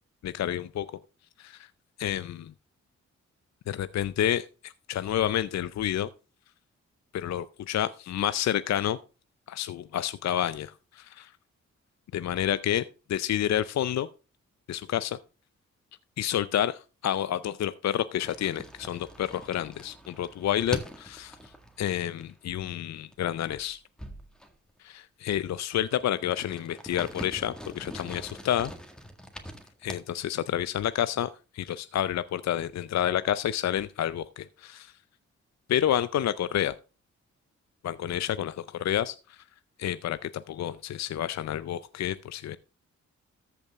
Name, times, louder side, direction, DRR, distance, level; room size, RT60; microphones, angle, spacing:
voice 1, 0.2-0.9 1.4-1.7 2.0-2.5 3.7-6.1 7.1-9.0 9.5-11.3 12.1-14.1 14.7-15.2 16.2-21.4 21.8-23.8 24.8-28.7 29.8-34.9 35.7-36.8 37.8-39.4 39.8-42.6, left 11 dB, 55° left, 14 dB, 0.5 m, -29 dB
sound 1, 18.2-22.7 22.9-23.2 23.5-24.8 25.4-25.5 25.8-30.0, equal, ahead, 1.8 m, -43 dB
14.0 x 5.3 x 3.6 m, 0.33 s
supercardioid pair, 45°, 32 cm